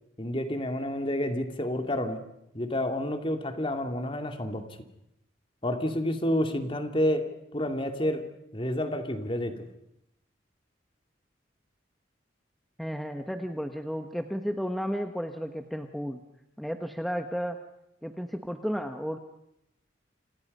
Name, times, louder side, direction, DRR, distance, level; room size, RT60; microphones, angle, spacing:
voice 1, 0.2-2.2 2.5-4.8 5.6-9.7, left 1 dB, 30° left, 6 dB, 2.6 m, -29 dB
voice 2, 12.8-16.2 16.6-17.6 18.0-19.2, equal, ahead, 5 dB, 1.2 m, -33 dB
28.5 x 27.0 x 5.5 m, 0.80 s
head